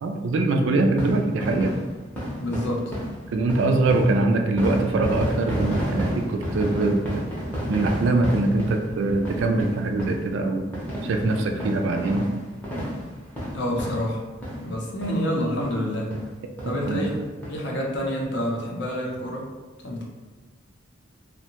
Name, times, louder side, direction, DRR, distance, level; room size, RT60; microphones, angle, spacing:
voice 1, 0.0-1.7 3.3-7.3 7.7-10.6 11.0-12.3 16.9-17.1, right 2 dB, 70° right, 4 dB, 0.3 m, -23 dB
sound 1, 0.9-14.8 15.0-15.2 15.6-15.7 16.1-16.3 16.6-17.5 18.0-18.1 18.2-18.3, equal, 10° left, 0.6 m, -31 dB
voice 2, 2.4-2.8 13.5-14.2 14.6-16.2 16.7-17.2 17.5-19.5 19.8-20.0, equal, 60° left, -1 dB, 0.5 m, -27 dB
2.6 x 2.1 x 2.8 m, 1.2 s
head